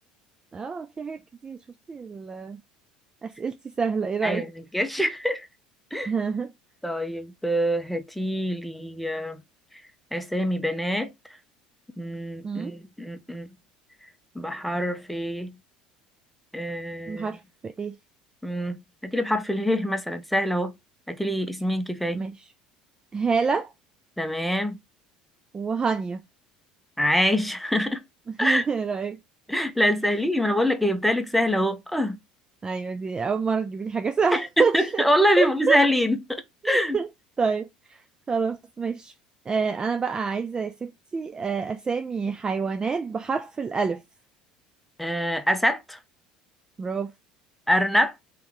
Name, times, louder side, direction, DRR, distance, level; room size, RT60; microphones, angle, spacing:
voice 1, 0.5-1.6 1.9-2.6 3.2-4.5 6.0-6.5 12.4-12.7 17.1-17.9 22.1-22.3 23.1-23.7 25.5-26.2 28.4-29.2 32.6-35.0 35.4-35.8 36.6-37.1 37.4-38.0 38.3-39.1 39.5-44.0 46.8-47.1, right 5 dB, 20° right, 0.3 m, -27 dB
voice 2, 4.2-5.5 5.9-6.1 6.8-9.4 10.1-11.1 12.0-13.5 14.3-15.6 16.5-17.3 18.4-20.7 21.1-22.2 24.2-24.8 27.0-28.0 28.4-28.6 29.5-32.2 34.3-37.0 45.0-46.0 47.7-48.1, equal, ahead, 0.7 m, -25 dB
3.1 x 2.9 x 3.7 m
figure-of-eight pair, 65°, 4 cm